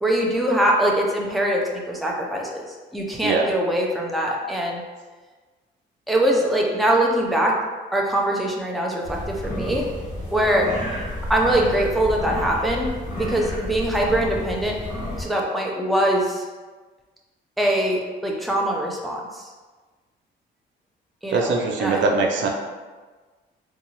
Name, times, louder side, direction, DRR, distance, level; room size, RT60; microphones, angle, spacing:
voice 1, 0.0-2.6 2.9-4.8 6.1-7.5 7.9-9.9 10.3-10.7 11.3-14.8 15.2-16.5 17.6-19.4 21.2-22.0, right 1 dB, ahead, -1 dB, 0.5 m, -22 dB
sound 1, 9.0-15.2, left 1 dB, 40° left, 1.5 m, -31 dB
voice 2, 21.3-22.5, right 3 dB, 70° right, 1 dB, 0.5 m, -21 dB
3.9 x 2.3 x 3.0 m, 1.3 s
cardioid pair, 90°, 20 cm